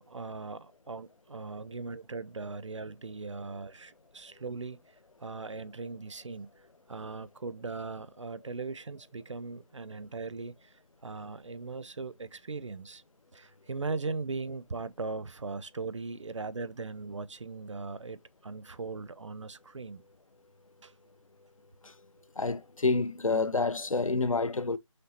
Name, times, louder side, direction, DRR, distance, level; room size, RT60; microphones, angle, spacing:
voice 1, 0.1-4.8 5.2-6.5 6.9-13.0 13.3-20.0 20.8-20.9, right 3 dB, 65° right, 0.4 m, -39 dB
voice 2, 22.4-24.8, left 3 dB, 90° left, 0.5 m, -28 dB
5.9 x 3.2 x 2.8 m
figure-of-eight pair, 160°, 17 cm